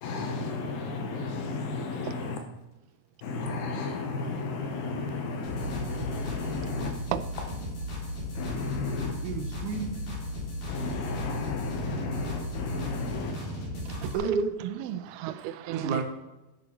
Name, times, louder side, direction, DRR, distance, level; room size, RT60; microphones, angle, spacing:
voice 1, 0.0-2.4 3.2-6.9 8.3-9.2 10.7-13.4, left 3 dB, 85° left, 3.4 m, -33 dB
sound 1, 5.4-14.2, left 1 dB, 55° left, 4.1 m, -36 dB
voice 2, 8.9-9.9 14.1-14.6 15.7-16.0, right 5 dB, 65° right, 2.3 m, -30 dB
voice 3, 14.6-16.0, right 12 dB, 85° right, 2.5 m, -34 dB
11.0 x 5.1 x 6.0 m
omnidirectional pair, 4.5 m